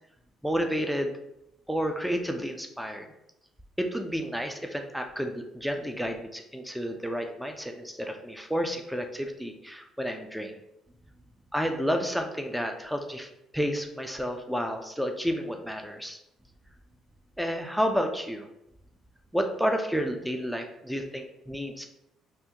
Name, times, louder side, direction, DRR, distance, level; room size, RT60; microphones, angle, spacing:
voice 1, 0.4-1.1 1.7-3.1 3.8-10.5 11.5-16.2 17.4-18.5 19.3-21.9, equal, ahead, 5 dB, 0.4 m, -31 dB
3.4 x 2.4 x 2.8 m, 0.84 s
hypercardioid pair, 60°, 0 cm